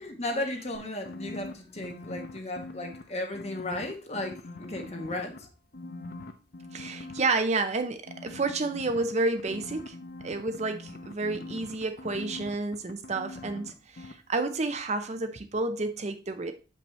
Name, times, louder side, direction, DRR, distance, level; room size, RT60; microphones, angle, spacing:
voice 1, 0.0-5.5, left 1 dB, 40° left, 3 dB, 1.2 m, -35 dB
sound 1, 0.7-3.0 3.3-5.4 5.7-7.2 8.1-13.7 14.0-14.1, left 2 dB, 60° left, 0.7 m, -42 dB
voice 2, 6.7-9.9 10.2-16.5, right 3 dB, 40° right, 8 dB, 0.6 m, -30 dB
7.0 x 5.3 x 3.1 m, 0.33 s
head